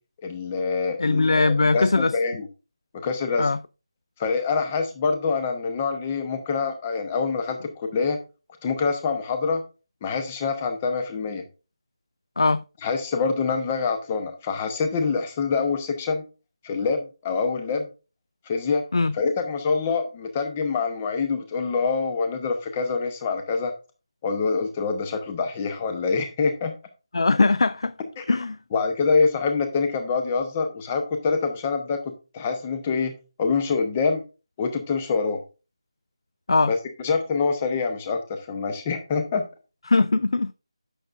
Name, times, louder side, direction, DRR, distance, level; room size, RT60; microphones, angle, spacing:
voice 1, 0.2-2.5 2.9-3.5 4.2-8.2 8.6-9.6 10.0-11.4 12.8-16.2 16.6-17.9 18.5-18.8 19.1-23.7 24.2-26.7 28.2-28.4 28.7-32.0 32.3-33.1 33.4-34.2 34.6-35.4 36.7-36.8 37.0-39.4, left 4 dB, 15° left, 0.7 m, -25 dB
voice 2, 1.0-2.1 3.4-3.6 12.4-12.6 18.9-19.1 27.1-27.9 28.3-28.6 36.5-36.7 39.9-40.5, left 3 dB, 65° left, 0.3 m, -20 dB
8.5 x 6.4 x 2.5 m
figure-of-eight pair, 175°, 3 cm